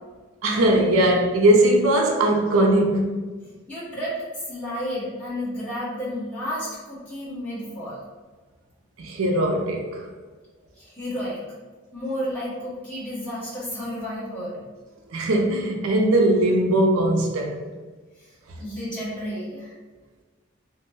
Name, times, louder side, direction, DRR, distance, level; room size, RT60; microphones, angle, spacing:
voice 1, 0.4-3.1 9.0-10.1 15.1-17.6, right 1 dB, 90° right, 0.5 m, -20 dB
voice 2, 3.7-8.0 10.8-11.5 11.9-14.6 18.2-18.3 18.6-19.7, equal, 5° left, 1.2 m, -32 dB
2.9 x 2.1 x 3.3 m
head